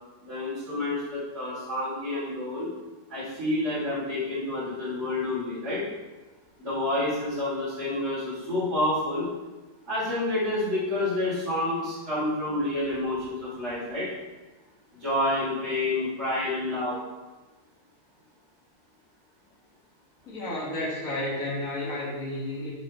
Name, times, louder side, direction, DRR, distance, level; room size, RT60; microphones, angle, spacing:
voice 1, 0.2-2.7 3.1-5.8 6.6-9.3 9.9-14.1 15.0-17.0, left 1 dB, 50° right, -12 dB, 4.1 m, -29 dB
voice 2, 20.3-22.7, left 1 dB, 60° left, -6 dB, 2.6 m, -31 dB
13.0 x 7.1 x 3.4 m, 1.2 s
omnidirectional pair, 1.6 m